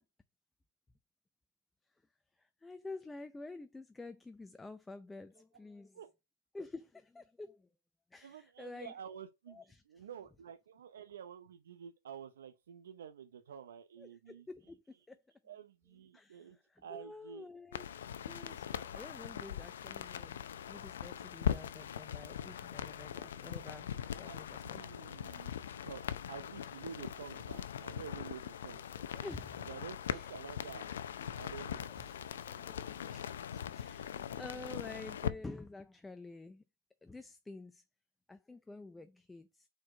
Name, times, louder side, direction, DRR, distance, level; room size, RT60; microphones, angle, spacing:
voice 1, 2.4-6.0 6.5-7.7 8.1-8.9 9.5-10.1 14.0-15.2 16.1-17.9 18.2-20.4 20.7-23.9 24.2-24.8 29.0-29.7 30.1-30.3 31.9-36.6 37.0-37.8 38.3-39.7, left 2 dB, 10° left, 0.4 m, -49 dB
voice 2, 8.2-14.5 15.4-16.6 16.8-17.5 24.2-25.5 25.8-26.0 26.3-28.8 29.7-30.9 31.3-31.9, right 8 dB, 90° right, 0.6 m, -49 dB
sound 1, 17.7-35.3, left 9 dB, 85° left, 0.5 m, -41 dB
4.7 x 4.3 x 4.8 m
supercardioid pair, 135°, 0 cm